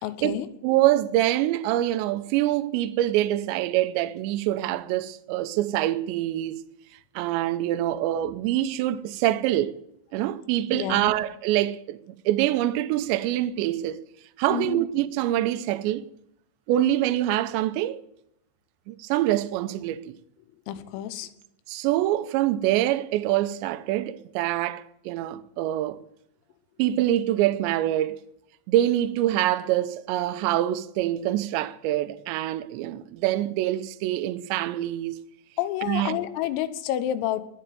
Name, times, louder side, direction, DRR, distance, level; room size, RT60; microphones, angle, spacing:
voice 1, 0.0-0.5 10.7-11.1 14.5-14.8 20.7-21.3 35.6-37.4, left 12 dB, 80° left, 3.7 m, -29 dB
voice 2, 0.6-6.6 7.2-9.8 10.1-12.0 12.3-14.0 14.4-16.0 16.7-18.0 18.9-20.1 21.7-26.0 26.8-28.2 28.7-35.2 35.8-36.2, right 14 dB, 80° right, 2.6 m, -25 dB
20.0 x 6.8 x 9.2 m
omnidirectional pair, 6.0 m